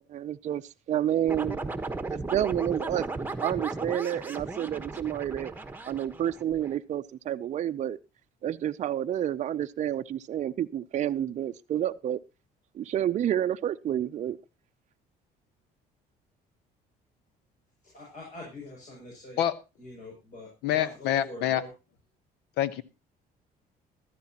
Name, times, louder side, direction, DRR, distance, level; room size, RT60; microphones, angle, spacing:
voice 1, 0.1-0.6 0.9-1.6 2.1-3.1 3.4-5.5 5.9-8.0 8.4-12.2 12.7-14.4, right 11 dB, 45° right, 0.5 m, -29 dB
sound 1, 1.3-6.8, right 3 dB, 10° right, 1.3 m, -36 dB
voice 2, 17.8-19.4 19.8-21.7, left 2 dB, 50° left, 7.0 m, -44 dB
voice 3, 20.6-21.6 22.6-22.8, left 11 dB, 80° left, 1.1 m, -26 dB
14.5 x 13.0 x 2.9 m
cardioid pair, 110°, 17 cm